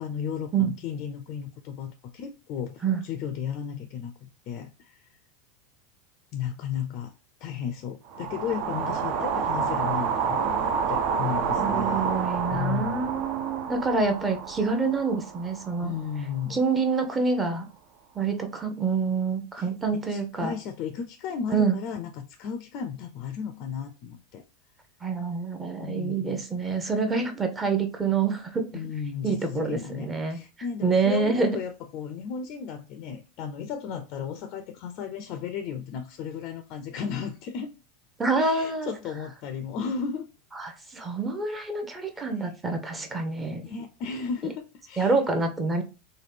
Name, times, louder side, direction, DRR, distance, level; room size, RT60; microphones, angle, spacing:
voice 1, 0.0-5.1 6.3-7.1 7.4-12.2 12.5-13.1 15.8-16.6 19.6-24.4 25.8-26.4 28.7-37.7 38.4-40.2 42.1-42.3 43.6-45.2, left 7 dB, 55° left, 0.3 m, -34 dB
sound 1, 8.1-16.3, right 6 dB, 55° right, 0.4 m, -29 dB
voice 2, 11.6-15.9 16.5-17.7 18.1-20.5 21.5-21.8 25.0-28.6 29.2-30.4 30.8-31.6 38.2-38.9 40.5-43.8 45.0-45.8, right 4 dB, 20° right, 0.7 m, -27 dB
3.1 x 2.2 x 3.3 m
hypercardioid pair, 95°, 0 cm